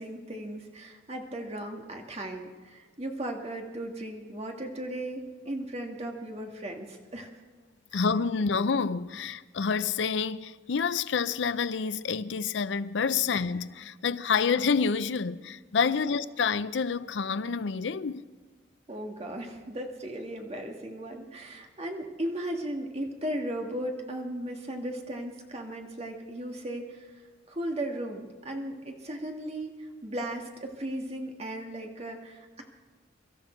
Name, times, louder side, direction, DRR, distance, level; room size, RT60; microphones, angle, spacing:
voice 1, 0.0-7.3 7.9-8.0 18.9-27.1 27.5-32.6, right 1 dB, 35° right, 1.7 m, -36 dB
voice 2, 7.9-18.2, left 5 dB, 70° left, 0.5 m, -28 dB
23.5 x 13.0 x 4.5 m
head